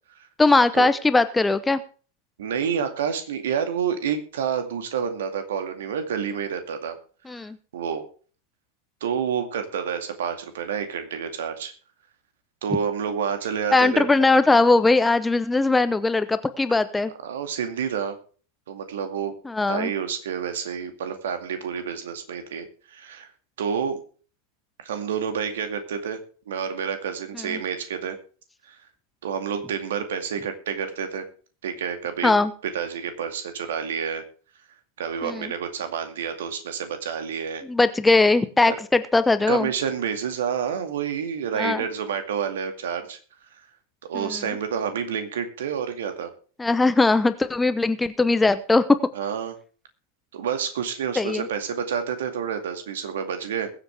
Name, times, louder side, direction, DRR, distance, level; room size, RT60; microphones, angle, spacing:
voice 1, 0.4-1.8 7.3-7.6 13.7-17.1 19.4-19.9 27.4-27.6 32.2-32.5 35.2-35.5 37.7-39.7 41.6-41.8 44.1-44.4 46.6-49.0 51.2-51.5, left 3 dB, 10° left, 12 dB, 0.8 m, -20 dB
voice 2, 2.4-7.0 7.7-8.1 9.0-11.7 12.6-14.1 17.2-18.2 18.7-19.3 19.7-23.3 23.6-24.0 24.8-26.2 26.5-28.2 28.7-28.8 29.2-31.2 31.6-32.3 32.7-34.2 35.0-37.6 38.7-38.8 39.4-43.2 44.1-46.3 49.1-49.5 50.3-53.7, right 7 dB, 60° right, 8 dB, 2.2 m, -29 dB
21.5 x 8.0 x 3.5 m, 0.40 s
figure-of-eight pair, 90°, 0 cm